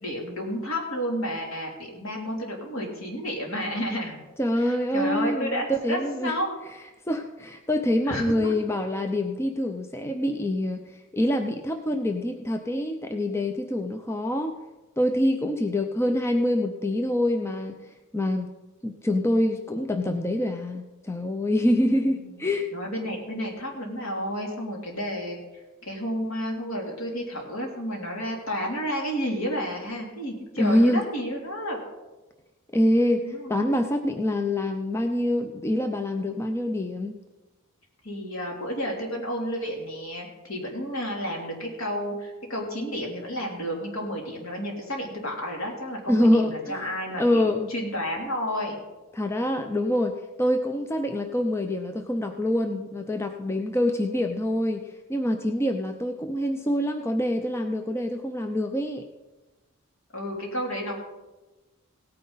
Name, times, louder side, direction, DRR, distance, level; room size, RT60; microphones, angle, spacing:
voice 1, 0.0-4.2 4.6-6.5 8.1-8.5 21.7-25.4 25.8-31.8 33.2-33.5 38.0-48.8 60.1-61.0, equal, 65° left, -1 dB, 3.1 m, -31 dB
voice 2, 4.4-6.3 7.1-14.5 15.0-18.5 18.8-22.7 30.6-31.1 32.7-37.2 46.1-46.9 47.2-47.7 49.1-59.1, left 1 dB, 10° left, 5 dB, 0.5 m, -25 dB
17.0 x 9.3 x 4.0 m, 1.1 s
head